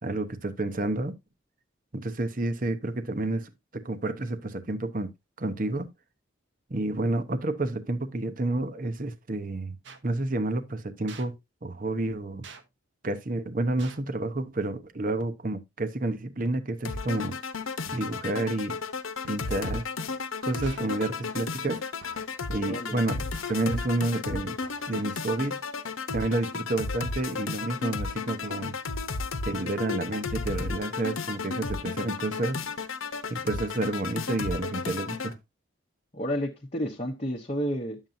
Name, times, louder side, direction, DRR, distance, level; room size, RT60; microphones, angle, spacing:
voice 1, 0.0-1.1 1.9-5.1 5.4-5.9 6.7-9.8 10.0-11.3 11.6-12.5 13.0-17.4 17.9-18.8 19.3-19.9 20.4-21.8 22.5-24.6 24.9-25.6 26.1-28.8 29.4-32.6 33.3-35.4, right 2 dB, 45° right, 0.9 m, -30 dB
sound 1, 9.8-10.0 11.1-11.3 12.4-12.6 13.8-14.1 15.2-15.6 16.4-16.9 17.9-18.3 19.2-19.7 20.6-20.9 22.0-22.4 23.3-23.9 24.6-25.2, right 5 dB, 65° right, 1.0 m, -50 dB
sound 2, 16.8-35.3, left 4 dB, 90° left, 1.0 m, -33 dB
voice 2, 22.7-23.0 36.1-38.0, equal, 30° left, 0.9 m, -31 dB
10.5 x 7.3 x 2.6 m
head